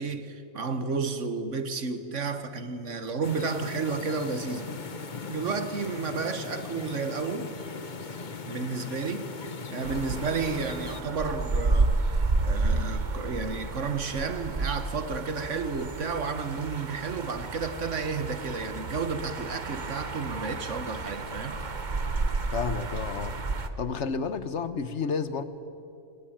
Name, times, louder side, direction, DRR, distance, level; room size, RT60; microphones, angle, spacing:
voice 1, 0.0-4.7 5.3-7.5 8.5-9.3 9.7-12.0 12.4-21.6, right 4 dB, 55° right, 1.7 m, -32 dB
sound 1, 3.2-11.0, left 4 dB, 35° left, 1.2 m, -39 dB
sound 2, 9.8-23.7, right 3 dB, 35° right, 1.2 m, -31 dB
voice 2, 22.5-23.4 23.8-25.4, left 5 dB, 55° left, 1.3 m, -30 dB
28.0 x 21.0 x 8.9 m
omnidirectional pair, 1.5 m